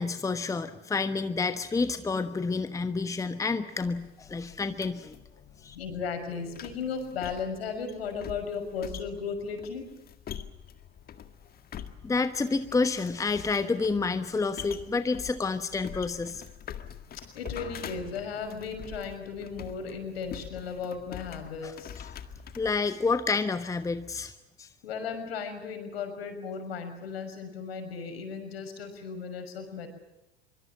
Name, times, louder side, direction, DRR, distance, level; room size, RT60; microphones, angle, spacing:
voice 1, 0.0-5.2 5.6-5.8 12.0-16.4 21.6-21.7 22.6-24.7, left 4 dB, 10° left, 11 dB, 1.2 m, -29 dB
sound 1, 3.8-22.9, left 9 dB, 30° left, 1.9 m, -45 dB
voice 2, 5.7-9.9 17.1-21.9 24.8-29.9, left 5 dB, 65° left, 6 dB, 6.2 m, -36 dB
25.0 x 24.5 x 7.6 m, 0.94 s
figure-of-eight pair, 80°, 33 cm